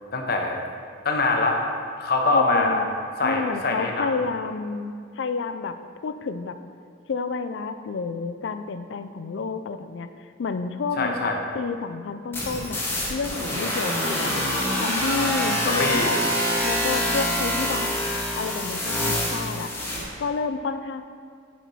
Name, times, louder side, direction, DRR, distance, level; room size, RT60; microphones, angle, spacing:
voice 1, 0.1-0.6 1.0-1.6 2.0-2.8 3.2-4.1 11.0-11.4 15.7-16.2, left 3 dB, 55° left, 2 dB, 0.8 m, -23 dB
voice 2, 2.3-3.0 3.2-5.8 6.0-6.6 7.1-12.8 13.1-14.5 14.8-16.2 16.6-17.9 18.4-19.7 20.2-21.0, left 4 dB, 75° left, 10 dB, 0.4 m, -30 dB
sound 1, 12.3-20.0, equal, 15° left, 1.2 m, -25 dB
7.3 x 4.3 x 5.4 m, 2.2 s
head